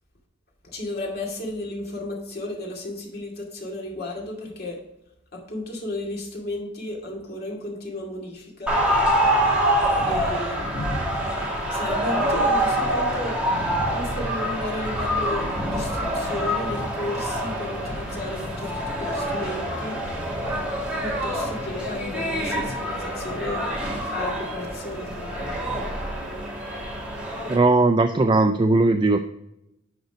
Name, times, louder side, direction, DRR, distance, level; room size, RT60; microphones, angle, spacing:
voice 1, 0.7-4.8 5.3-8.8 10.1-10.8 11.7-13.4 13.9-20.0 21.0-23.7 24.1-25.9, left 1 dB, 55° left, -1 dB, 2.3 m, -33 dB
sound 1, 8.7-27.6, equal, 5° right, 1.8 m, -26 dB
voice 2, 27.5-29.2, right 2 dB, 25° right, 7 dB, 0.4 m, -18 dB
10.5 x 4.1 x 4.9 m, 0.86 s
head